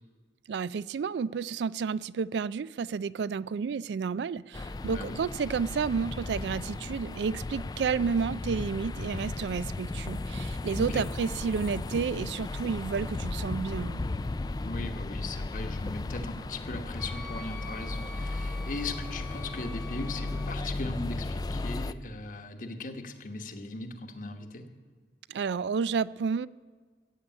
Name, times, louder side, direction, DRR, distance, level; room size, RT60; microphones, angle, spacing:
voice 1, 0.5-14.0 25.3-26.5, right 5 dB, 80° right, 19 dB, 0.3 m, -31 dB
sound 1, 4.5-21.9, left 2 dB, 25° left, 0.3 m, -35 dB
voice 2, 4.8-5.2 10.8-11.1 14.6-24.7, left 2 dB, 50° left, 6 dB, 1.2 m, -39 dB
Wind instrument woodwind instrument, 17.0-20.6, left 2 dB, 5° left, 1.1 m, -46 dB
15.0 x 8.3 x 8.7 m, 1.5 s
head